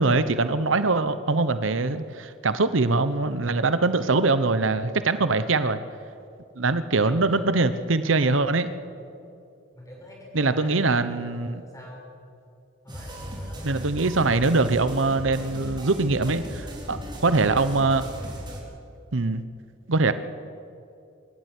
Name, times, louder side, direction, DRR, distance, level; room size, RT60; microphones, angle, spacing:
voice 1, 0.0-5.8 6.6-8.7 10.3-11.5 13.6-18.1 19.1-19.4 19.9-20.1, right 3 dB, 80° right, 12 dB, 0.9 m, -23 dB
voice 2, 5.2-5.7 6.9-7.5 8.9-9.2 9.7-12.0 12.8-13.7, equal, 15° left, -2 dB, 6.8 m, -44 dB
sound 1, 12.9-18.6, equal, 25° right, 4.5 m, -37 dB
24.0 x 14.0 x 9.9 m, 2.5 s
head